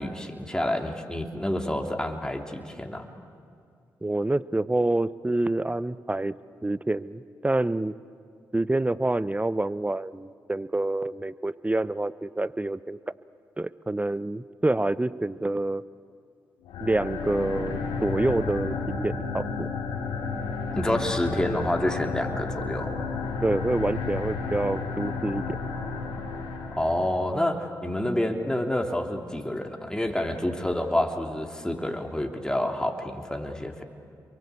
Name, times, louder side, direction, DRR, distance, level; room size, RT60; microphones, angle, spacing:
voice 1, 0.0-3.1 20.7-22.9 26.7-33.8, left 1 dB, 10° left, 3 dB, 3.1 m, -28 dB
voice 2, 4.0-6.3 6.6-7.9 8.5-13.0 13.6-15.8 16.8-19.7 23.4-25.6, right 2 dB, 15° right, 17 dB, 0.8 m, -27 dB
sound 1, 16.6-27.1, left 4 dB, 90° left, 3.0 m, -32 dB
27.0 x 23.0 x 8.4 m, 2.4 s
supercardioid pair, 40°, 8 cm